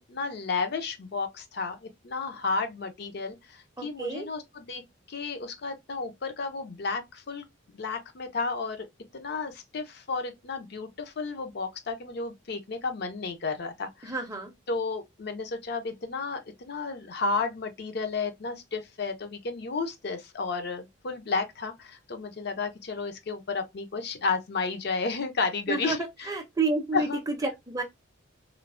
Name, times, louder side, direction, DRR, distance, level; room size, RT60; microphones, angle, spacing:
voice 1, 0.1-4.8 5.1-7.4 7.7-8.9 9.1-14.2 14.7-26.3 26.9-27.2, left 4 dB, 50° left, 0.5 m, -32 dB
voice 2, 3.8-4.3 14.0-14.5 25.7-27.8, right 3 dB, 15° right, 0.5 m, -30 dB
3.1 x 2.0 x 2.4 m
head